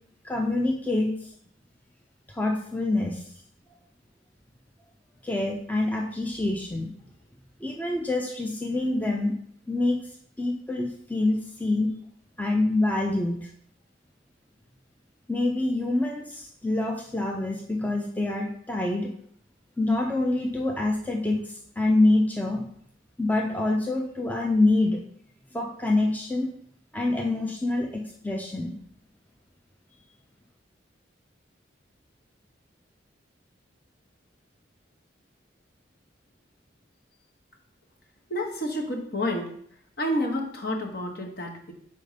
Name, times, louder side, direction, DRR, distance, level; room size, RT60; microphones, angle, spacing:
voice 1, 0.2-1.3 2.3-3.3 5.2-6.9 7.6-9.4 9.7-11.9 12.4-13.5 15.3-19.1 19.8-22.6 23.2-25.0 25.5-26.5 26.9-28.7, left 2 dB, 10° left, 0 dB, 0.5 m, -26 dB
voice 2, 38.3-39.5 40.0-41.7, left 1 dB, 55° left, 1 dB, 1.1 m, -29 dB
5.3 x 4.2 x 5.0 m, 0.65 s
head